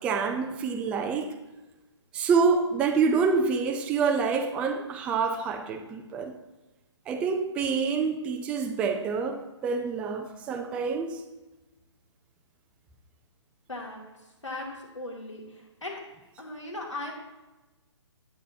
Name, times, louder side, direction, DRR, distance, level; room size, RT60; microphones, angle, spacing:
voice 1, 0.0-1.3 2.1-6.3 7.1-11.2, right 5 dB, 10° right, 4 dB, 0.3 m, -27 dB
voice 2, 13.7-14.0 14.4-14.7 14.9-15.4 15.8-16.0 16.4-17.1, left 2 dB, 85° left, 0 dB, 2.2 m, -37 dB
9.3 x 8.1 x 2.7 m, 1.1 s
figure-of-eight pair, 140°, 15 cm